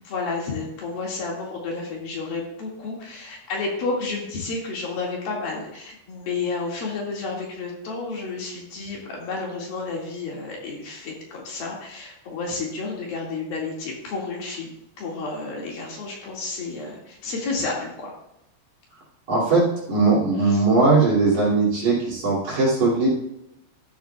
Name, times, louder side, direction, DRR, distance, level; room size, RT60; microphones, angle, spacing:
voice 1, 0.0-14.7 15.0-18.1 20.4-20.6, left 3 dB, 60° left, -2 dB, 3.7 m, -31 dB
voice 2, 19.3-23.1, right 3 dB, 45° right, -6 dB, 3.8 m, -19 dB
13.5 x 10.5 x 2.4 m, 0.85 s
omnidirectional pair, 4.9 m